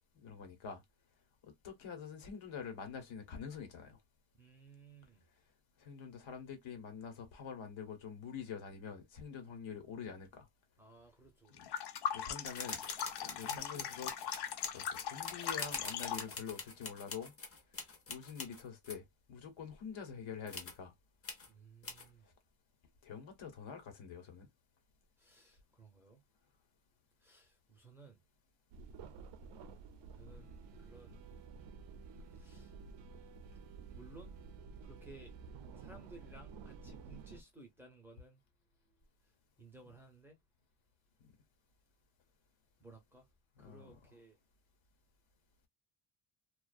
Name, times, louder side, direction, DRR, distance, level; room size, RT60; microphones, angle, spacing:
voice 1, 0.2-0.8 1.6-4.0 5.8-10.5 11.5-11.7 12.1-12.8 13.2-14.1 14.7-17.3 18.1-20.9 23.0-24.5 41.2-41.3 43.6-43.9, left 6 dB, 75° left, 1.1 m, -46 dB
voice 2, 4.3-5.2 10.8-11.8 13.4-14.1 21.5-22.3 25.2-26.2 27.2-28.2 30.2-31.2 32.3-32.7 33.9-34.3 34.8-35.3 35.8-38.4 39.2-40.4 42.8-43.3 43.6-44.4, right 3 dB, 5° right, 0.7 m, -58 dB
sound 1, 11.6-16.3, left 8 dB, 55° left, 0.5 m, -40 dB
sound 2, 12.5-19.0 20.5-20.8 21.2-21.5 21.8-22.1, left 4 dB, 30° left, 0.8 m, -45 dB
sound 3, 28.7-37.4, right 4 dB, 65° right, 0.5 m, -51 dB
2.4 x 2.3 x 2.4 m
cardioid pair, 160°, 48 cm